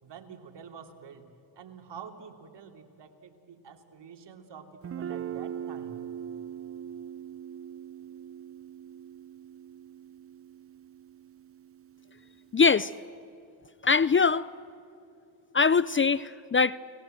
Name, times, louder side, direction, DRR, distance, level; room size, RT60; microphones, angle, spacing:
voice 1, 0.0-1.3 1.6-6.0, right 6 dB, 65° right, 5 dB, 3.0 m, -47 dB
Guitar, 4.8-12.5, right 9 dB, 30° right, 0.5 m, -41 dB
voice 2, 12.5-12.9 13.8-14.5 15.5-16.8, left 5 dB, 25° left, 19 dB, 0.5 m, -22 dB
29.5 x 20.0 x 7.7 m, 2.7 s
supercardioid pair, 65°, 45 cm